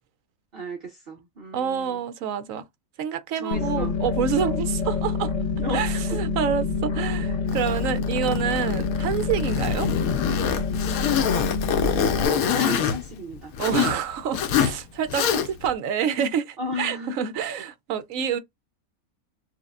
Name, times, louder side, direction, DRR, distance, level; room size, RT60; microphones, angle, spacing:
voice 1, 0.5-2.0 3.3-3.9 5.6-6.0 11.9-13.5 16.6-17.2, equal, 45° right, 1.0 m, -35 dB
voice 2, 1.5-2.7 3.0-5.3 5.7-9.9 13.6-18.4, right 8 dB, 70° right, 1.0 m, -27 dB
sound 1, 3.5-12.3, left 4 dB, 65° left, 1.0 m, -27 dB
Zipper (clothing), 7.5-14.0 14.3-14.8 15.1-15.7, left 8 dB, 85° left, 1.1 m, -25 dB
6.4 x 2.2 x 2.4 m
omnidirectional pair, 1.5 m